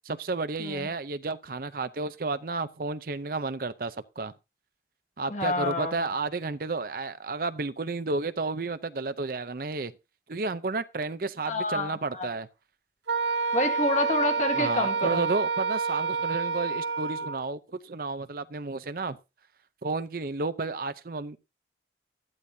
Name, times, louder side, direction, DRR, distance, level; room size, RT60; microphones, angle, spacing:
voice 1, 0.1-4.3 5.2-9.9 10.3-12.5 14.5-19.2 19.8-21.4, right 3 dB, 50° right, 0.6 m, -32 dB
voice 2, 5.3-6.1 11.5-12.3 13.5-15.3, left 2 dB, 40° left, 1.8 m, -28 dB
Wind instrument woodwind instrument, 13.1-17.4, right 4 dB, 80° right, 1.1 m, -28 dB
14.0 x 12.0 x 2.7 m
head